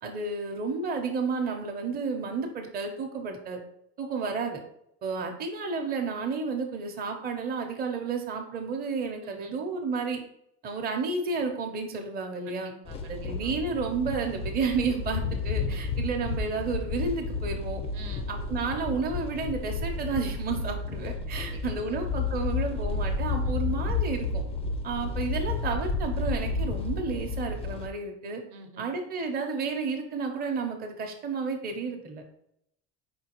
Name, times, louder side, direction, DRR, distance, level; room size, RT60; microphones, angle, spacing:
voice 1, 0.0-3.6 4.0-4.6 5.0-10.2 10.6-12.7 13.1-17.8 18.3-24.4 24.8-28.4 28.8-32.2, right 4 dB, 30° right, 3 dB, 0.7 m, -31 dB
voice 2, 9.2-9.6 12.4-13.7 15.6-15.9 17.9-18.3 21.3-22.0 23.4-23.7 28.5-28.9, right 2 dB, 65° right, 6 dB, 0.9 m, -48 dB
sound 1, 12.9-27.9, left 4 dB, 20° left, 0.3 m, -31 dB
4.7 x 3.7 x 2.9 m, 0.74 s
cardioid pair, 135°, 32 cm